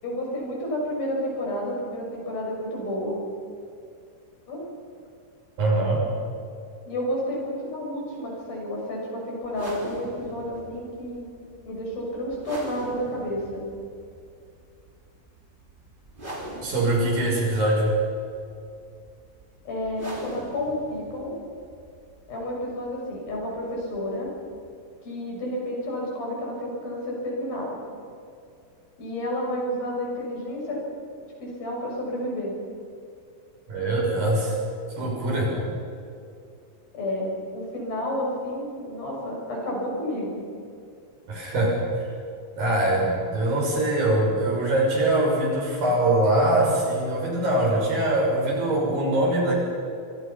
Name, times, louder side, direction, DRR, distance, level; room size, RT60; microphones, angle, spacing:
voice 1, 0.0-3.2 4.5-4.6 6.9-11.3 11.7-13.7 19.7-21.4 22.3-24.3 25.0-27.8 29.0-30.8 31.4-32.5 36.9-40.5, left 1 dB, 85° left, -2 dB, 8.4 m, -30 dB
voice 2, 5.6-6.0 16.6-17.9 33.7-34.6 34.9-35.6 41.3-41.8 42.5-49.5, right 1 dB, 75° right, -2 dB, 8.3 m, -23 dB
sound 1, 9.4-24.8, right 1 dB, 15° right, 3.5 m, -43 dB
26.0 x 25.5 x 5.9 m, 2.5 s
omnidirectional pair, 4.1 m